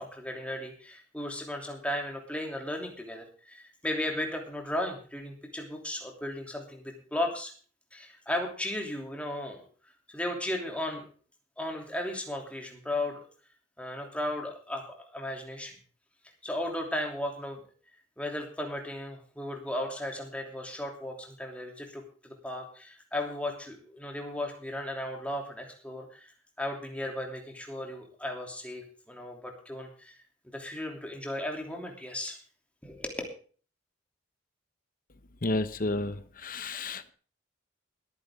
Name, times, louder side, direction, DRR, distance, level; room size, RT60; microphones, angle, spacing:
voice 1, 0.0-7.5 7.9-9.6 10.1-11.1 11.6-13.2 13.8-15.8 16.4-17.6 18.2-26.3 26.6-30.2 30.5-32.4 32.8-33.2, left 1 dB, 5° left, 2 dB, 3.0 m, -35 dB
voice 2, 35.4-37.1, left 2 dB, 45° left, 13 dB, 1.0 m, -31 dB
20.5 x 9.7 x 3.7 m, 0.41 s
head